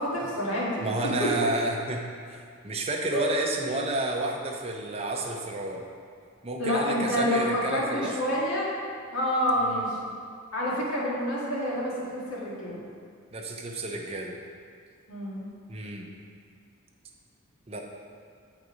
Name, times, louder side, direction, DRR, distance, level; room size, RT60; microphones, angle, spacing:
voice 1, 0.0-0.9 1.2-1.3 3.1-3.3 3.6-3.8 6.6-8.7 9.1-10.0 10.5-12.9 15.1-15.5, equal, 85° left, -5 dB, 1.8 m, -28 dB
voice 2, 0.8-5.9 6.4-8.1 9.7-9.8 13.3-14.4 15.7-16.1 17.7-17.8, right 2 dB, 30° right, 1 dB, 0.6 m, -31 dB
7.8 x 4.0 x 4.9 m, 2.2 s
head